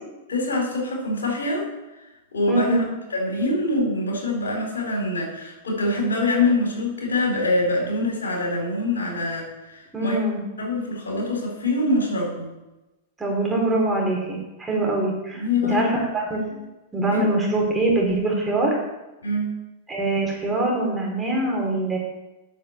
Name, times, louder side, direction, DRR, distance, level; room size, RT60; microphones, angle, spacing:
voice 1, 0.3-1.7 2.3-2.8 3.1-10.2 10.6-12.5 15.3-15.9 17.1-17.2 19.2-19.6, left 2 dB, 85° left, 0 dB, 4.4 m, -24 dB
voice 2, 2.5-2.9 9.9-10.4 13.2-16.6 16.9-18.8 19.9-22.0, right 2 dB, 10° right, -2 dB, 4.5 m, -23 dB
9.1 x 6.9 x 7.4 m, 1.0 s
hypercardioid pair, 110°, 0 cm